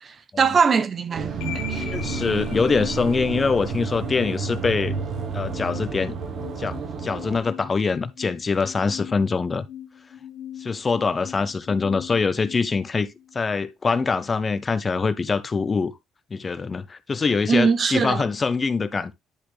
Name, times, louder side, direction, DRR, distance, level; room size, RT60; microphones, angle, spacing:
voice 1, 0.0-1.9 17.5-18.2, right 5 dB, 30° right, 0.6 m, -22 dB
sound 1, 1.1-7.4, right 5 dB, 45° right, 1.2 m, -31 dB
sound 2, 1.4-13.5, left 10 dB, 90° left, 1.0 m, -39 dB
voice 2, 1.9-4.9 5.3-6.1 6.6-9.7 10.6-13.1 13.3-15.9 16.3-19.1, left 4 dB, 20° left, 0.4 m, -24 dB
10.5 x 4.1 x 3.2 m
cardioid pair, 165°, 0 cm